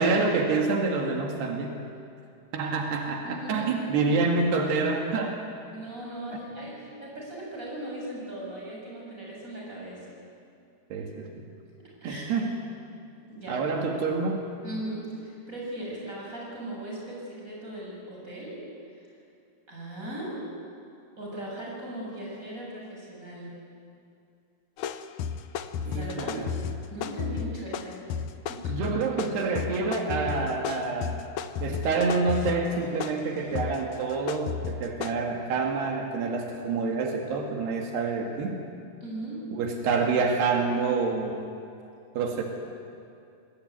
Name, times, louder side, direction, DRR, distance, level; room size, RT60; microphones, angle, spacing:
voice 1, 0.0-1.8 2.5-5.4 10.9-11.5 12.0-12.6 13.5-14.5 25.9-26.5 28.7-31.2 31.6-38.6 39.5-41.4 42.2-42.4, right 4 dB, 85° right, 2 dB, 4.2 m, -27 dB
voice 2, 3.2-3.7 5.7-10.1 11.8-12.3 13.3-13.6 14.6-18.6 19.0-19.1 19.7-20.4 21.2-23.5 25.9-26.5 26.9-28.0 28.5-28.8 39.0-39.4, right 1 dB, 20° right, -3 dB, 7.7 m, -38 dB
sound 1, 24.8-35.1, left 7 dB, 90° left, 1.6 m, -34 dB
26.5 x 20.0 x 9.4 m, 2.5 s
omnidirectional pair, 4.6 m